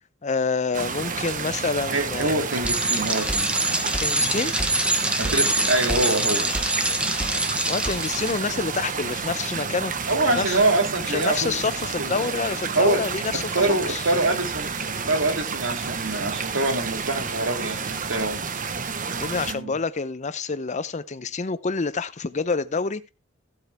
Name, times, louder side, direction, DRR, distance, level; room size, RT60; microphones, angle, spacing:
voice 1, 0.2-2.3 4.0-4.5 7.7-10.6 11.1-14.0 19.2-23.1, left 4 dB, 35° left, 0.6 m, -28 dB
sound 1, 0.7-19.5, right 5 dB, 40° right, 1.0 m, -30 dB
voice 2, 1.9-3.8 4.2-4.4 5.2-6.5 10.1-11.6 12.0-12.3 12.7-13.0 13.3-14.7 15.1-18.4 19.5-19.7, right 2 dB, 70° right, 2.7 m, -25 dB
Bicycle, 2.6-8.3, right 1 dB, 5° right, 1.1 m, -25 dB
15.0 x 8.1 x 3.4 m
head